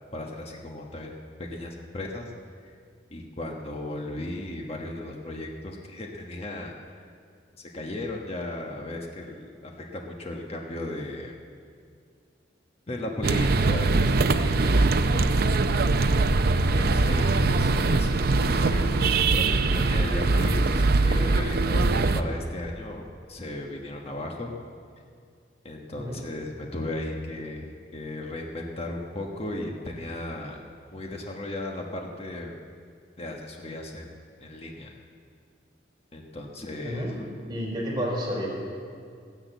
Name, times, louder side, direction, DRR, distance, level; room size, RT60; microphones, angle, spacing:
voice 1, 0.1-1.1 1.4-2.3 2.6-2.7 3.1-7.0 7.6-11.3 12.9-15.4 16.4-23.0 23.3-24.5 25.6-30.6 30.9-32.6 33.2-34.1 34.4-34.9 36.1-37.1, left 1 dB, 35° left, 1 dB, 1.2 m, -36 dB
sound 1, 13.2-22.2, right 3 dB, 55° right, 0.6 m, -22 dB
voice 2, 25.9-26.2 36.8-37.1 37.4-38.5, equal, 25° right, -5 dB, 4.8 m, -31 dB
14.5 x 10.5 x 8.0 m, 2.2 s
head